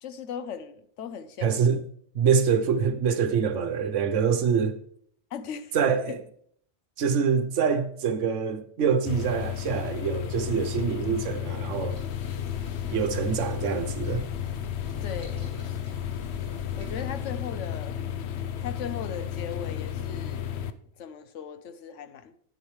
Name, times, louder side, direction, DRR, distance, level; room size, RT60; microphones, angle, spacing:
voice 1, 0.0-1.8 5.3-5.8 6.1-6.2 15.0-15.8 16.8-18.0 18.6-20.5 21.0-22.4, left 7 dB, 90° left, 1.1 m, -38 dB
voice 2, 1.4-1.8 2.1-4.8 5.7-6.1 7.0-12.0 12.9-14.3, right 6 dB, 85° right, 1.2 m, -25 dB
sound 1, 9.1-20.7, left 10 dB, 70° left, 0.8 m, -33 dB
sound 2, 11.9-17.1, equal, 20° left, 3.0 m, -45 dB
10.0 x 8.8 x 3.2 m
omnidirectional pair, 1.2 m